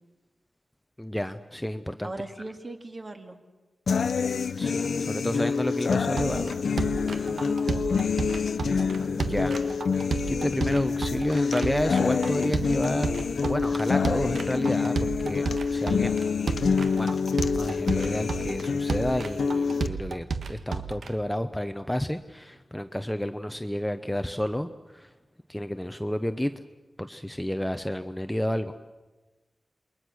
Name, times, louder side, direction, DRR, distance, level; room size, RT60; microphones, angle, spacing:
voice 1, 1.0-2.1 4.6-6.6 9.1-9.6 10.3-16.2 16.9-17.2 17.5-25.1 25.5-26.5 27.0-28.7, left 1 dB, 5° left, 8 dB, 0.7 m, -30 dB
voice 2, 2.0-3.4 7.2-7.9, right 2 dB, 35° right, 5 dB, 2.1 m, -39 dB
sound 1, 3.9-19.9, left 5 dB, 75° left, 0.7 m, -27 dB
sound 2, 6.2-21.1, right 5 dB, 80° right, 1.4 m, -32 dB
28.5 x 22.0 x 6.3 m, 1.2 s
wide cardioid pair, 140°, 0 cm